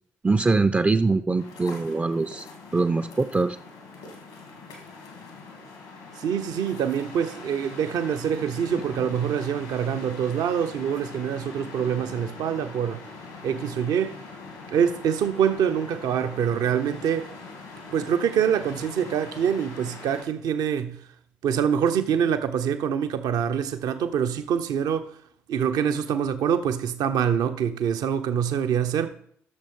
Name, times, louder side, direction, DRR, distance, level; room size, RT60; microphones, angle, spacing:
voice 1, 0.2-2.5 2.7-3.6, right 3 dB, 20° right, 0.5 m, -23 dB
sound 1, 1.4-20.2, left 4 dB, 80° left, 2.4 m, -42 dB
voice 2, 6.2-13.0 13.4-14.2 14.7-17.3 17.9-21.1 21.4-25.2 25.5-29.1, right 8 dB, 65° right, 0.7 m, -25 dB
12.5 x 6.8 x 3.7 m
hypercardioid pair, 40°, 7 cm